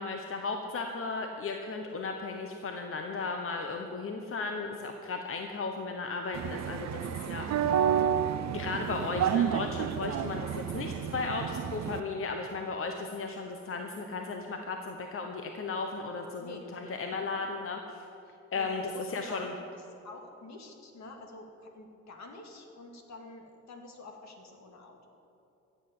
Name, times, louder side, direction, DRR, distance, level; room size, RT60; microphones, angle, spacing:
voice 1, 0.0-7.7 8.5-18.0 18.5-19.5, left 4 dB, 45° left, 4 dB, 1.1 m, -35 dB
sound 1, 6.3-12.0, right 9 dB, 65° right, 0.7 m, -30 dB
voice 2, 7.4-7.7 16.4-16.8 17.1-17.2 18.2-25.1, left 2 dB, 65° left, 3 dB, 2.3 m, -48 dB
14.0 x 8.0 x 8.7 m, 2.9 s
cardioid pair, 90°, 30 cm